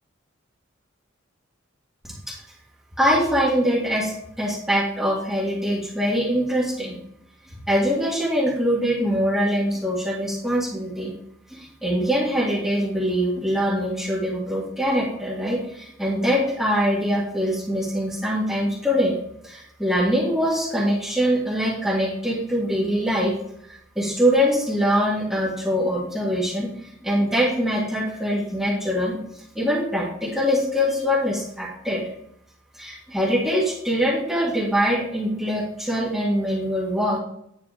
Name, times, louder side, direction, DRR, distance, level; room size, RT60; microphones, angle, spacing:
voice 1, 3.0-7.0 7.7-11.1 11.5-19.1 19.4-23.3 24.0-29.2 29.6-32.0 32.8-37.2, equal, ahead, -6 dB, 1.8 m, -23 dB
10.0 x 4.2 x 5.0 m, 0.74 s
head